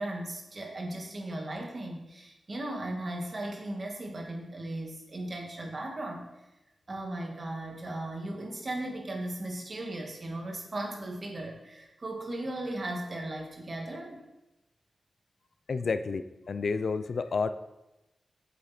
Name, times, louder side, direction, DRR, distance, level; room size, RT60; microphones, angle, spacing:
voice 1, 0.0-6.3 6.9-14.2, right 1 dB, 45° right, 1 dB, 2.0 m, -37 dB
voice 2, 15.7-17.5, left 4 dB, 70° left, 11 dB, 0.5 m, -30 dB
8.3 x 7.7 x 4.3 m, 0.95 s
wide cardioid pair, 75°, 0 cm